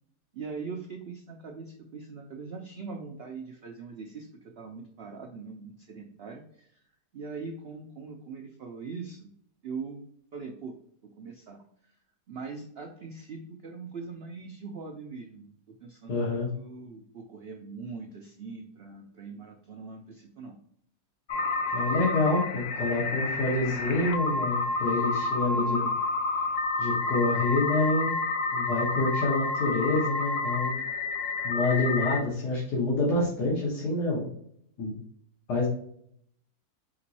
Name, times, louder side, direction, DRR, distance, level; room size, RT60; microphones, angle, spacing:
voice 1, 0.3-6.8 7.1-9.3 9.6-10.0 10.3-10.7 11.0-12.0 12.3-20.6 25.5-26.0, right 4 dB, 75° right, 2 dB, 0.5 m, -41 dB
voice 2, 16.1-16.5 21.7-25.8 26.8-28.2 28.5-30.8 31.4-34.3 34.8-34.9 35.5-35.7, left 2 dB, 90° left, -6 dB, 1.8 m, -27 dB
sound 1, 21.3-32.2, left 3 dB, 65° left, 0.9 m, -29 dB
5.2 x 3.0 x 2.8 m, 0.68 s
omnidirectional pair, 1.7 m